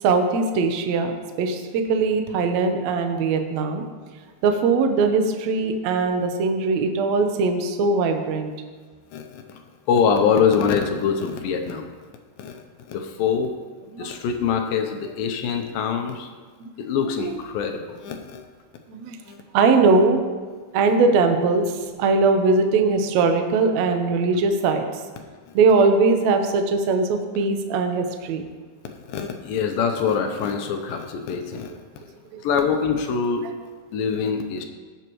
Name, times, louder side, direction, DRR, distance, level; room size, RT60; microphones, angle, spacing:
voice 1, 0.0-3.8 4.4-8.5 13.9-14.1 16.6-16.7 17.1-17.3 18.9-19.2 19.5-20.2 20.7-24.9 25.5-28.4 32.3-32.4, right 4 dB, 75° right, 5 dB, 1.6 m, -20 dB
voice 2, 9.1-9.6 9.9-11.9 12.4-12.6 12.9-13.5 14.0-16.3 16.8-18.4 19.3-19.4 25.5-25.6 28.8-32.0 32.4-33.5 33.9-34.6, left 6 dB, 75° left, 5 dB, 2.3 m, -24 dB
18.0 x 8.1 x 3.1 m, 1.4 s
omnidirectional pair, 4.5 m